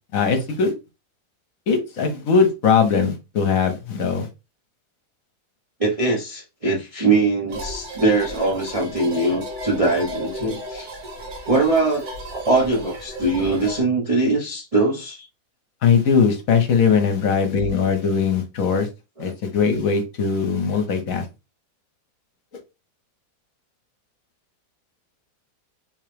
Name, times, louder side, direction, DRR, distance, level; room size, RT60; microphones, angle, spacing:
voice 1, 0.1-0.7 1.7-4.3 15.8-18.9 19.2-21.3, left 6 dB, 65° left, 1.1 m, -20 dB
voice 2, 5.8-10.9 11.5-15.3 19.2-19.3, right 3 dB, 40° right, 0.5 m, -22 dB
sound 1, 7.5-13.8, equal, 70° right, 1.6 m, -34 dB
3.6 x 2.9 x 3.2 m
omnidirectional pair, 1.7 m